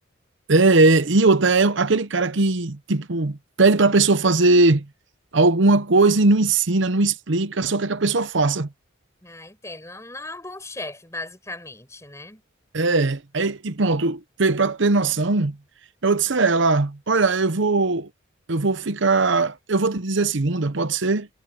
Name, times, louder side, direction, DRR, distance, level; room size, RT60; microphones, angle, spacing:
voice 1, 0.5-4.8 5.3-8.7 12.7-15.6 16.0-18.1 18.5-21.3, right 3 dB, 65° right, 0.9 m, -19 dB
voice 2, 9.2-12.4, left 2 dB, 15° left, 5.8 m, -37 dB
head